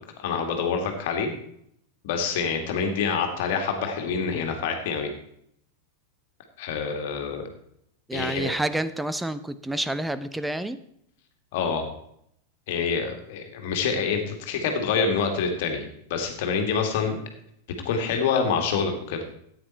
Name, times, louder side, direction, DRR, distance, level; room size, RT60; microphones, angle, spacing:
voice 1, 0.2-1.3 2.0-5.1 6.6-7.5 8.1-8.5 11.5-11.9 12.7-17.2 17.8-19.2, left 5 dB, 50° left, 4 dB, 2.3 m, -26 dB
voice 2, 8.1-10.8, right 1 dB, 5° right, 13 dB, 0.7 m, -29 dB
14.0 x 9.5 x 4.4 m, 0.71 s
figure-of-eight pair, 90°, 0 cm